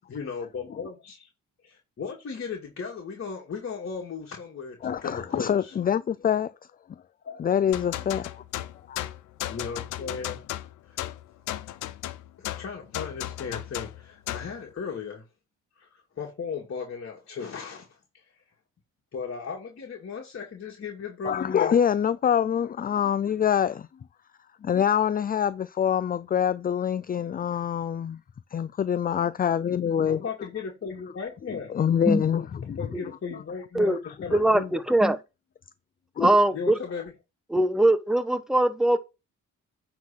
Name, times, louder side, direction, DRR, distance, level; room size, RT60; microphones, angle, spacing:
voice 1, 0.1-1.3 1.6-5.8 7.2-7.4 9.5-10.5 10.9-11.0 12.4-15.2 15.8-17.9 18.1-18.2 19.1-21.8 30.1-31.8 32.8-34.8 36.5-37.1, left 5 dB, 45° left, 2.4 m, -36 dB
voice 2, 4.8-6.5 7.4-8.3 8.9-9.0 21.2-23.9 24.6-28.2 28.5-30.2 31.7-32.8 34.3-34.4 36.2-36.3, left 8 dB, 30° left, 0.4 m, -25 dB
sound 1, 7.7-14.6, left 14 dB, 85° left, 0.7 m, -35 dB
voice 3, 34.3-35.2 36.2-36.8 37.5-39.0, right 1 dB, ahead, 1.1 m, -21 dB
9.4 x 4.0 x 5.8 m
cardioid pair, 90°, 30 cm